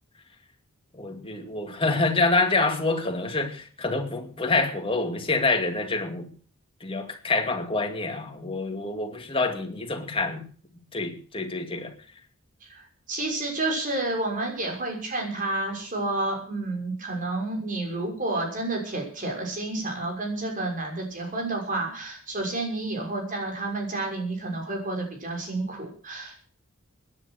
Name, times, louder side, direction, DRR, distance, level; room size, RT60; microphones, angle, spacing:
voice 1, 0.9-6.3 6.8-10.4 10.9-11.9, left 3 dB, 25° left, 2.4 m, -26 dB
voice 2, 12.7-26.4, right 2 dB, 40° right, 6.3 m, -30 dB
17.0 x 10.5 x 6.6 m
head